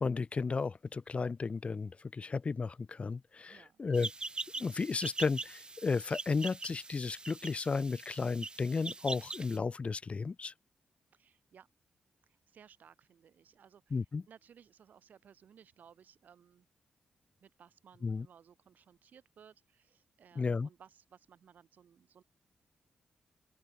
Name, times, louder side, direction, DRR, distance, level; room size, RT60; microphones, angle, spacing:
voice 1, 0.0-4.1 4.6-10.5 13.9-14.2 18.0-18.3 20.4-20.7, left 4 dB, 45° left, 1.1 m, -34 dB
voice 2, 3.5-4.0 11.1-11.7 12.5-16.7 17.4-22.2, right 8 dB, 75° right, 4.0 m, -60 dB
sound 1, 3.9-9.6, right 3 dB, 30° right, 2.1 m, -42 dB
open air
cardioid pair, 60°, 3 cm